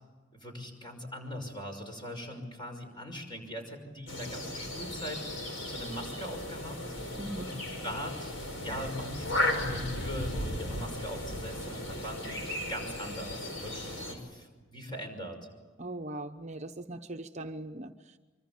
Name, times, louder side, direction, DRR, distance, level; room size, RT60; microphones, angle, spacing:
voice 1, 0.4-6.8 7.4-7.5 7.8-8.3 8.6-15.4, equal, 25° left, 4 dB, 5.8 m, -41 dB
sound 1, 4.1-14.1, left 1 dB, 70° left, 5.5 m, -35 dB
voice 2, 15.8-18.2, right 1 dB, 35° right, 5 dB, 1.0 m, -40 dB
25.5 x 25.0 x 7.4 m, 1.3 s
head